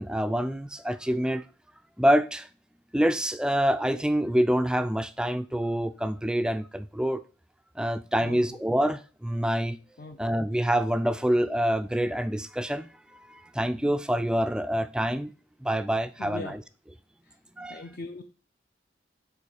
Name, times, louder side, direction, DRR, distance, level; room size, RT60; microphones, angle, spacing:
voice 1, 0.0-1.4 2.0-2.5 2.9-7.2 7.8-9.8 10.2-12.9 13.3-15.3 15.6-16.6 17.6-17.8, equal, 5° right, 0.3 m, -26 dB
voice 2, 8.2-8.6 10.0-10.2 16.2-16.6 17.2-17.4 17.7-18.2, left 2 dB, 50° left, 0.5 m, -40 dB
8.3 x 3.1 x 6.4 m
head